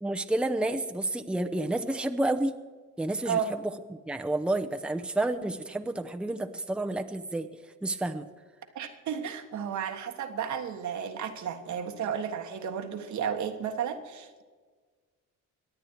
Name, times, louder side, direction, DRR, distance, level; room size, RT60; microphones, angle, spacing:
voice 1, 0.0-2.5 3.0-7.5 7.8-8.3, right 2 dB, 5° right, 6 dB, 0.8 m, -30 dB
voice 2, 8.7-14.4, right 7 dB, 70° right, 6 dB, 1.6 m, -33 dB
23.0 x 9.0 x 4.6 m, 1.5 s
cardioid pair, 90°, 30 cm